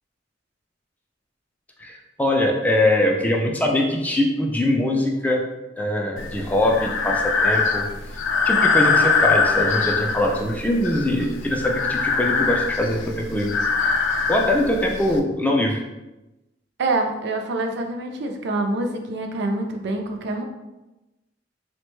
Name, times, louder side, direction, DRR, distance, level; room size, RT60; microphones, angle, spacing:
voice 1, 1.8-5.4 5.8-7.8 8.5-13.5 14.3-15.8, left 1 dB, 10° left, 0 dB, 0.3 m, -22 dB
Breathing, 6.2-15.2, left 4 dB, 90° left, 0.4 m, -22 dB
voice 2, 16.8-20.4, right 2 dB, 65° right, 4 dB, 0.4 m, -26 dB
3.3 x 2.1 x 3.0 m, 1.0 s
head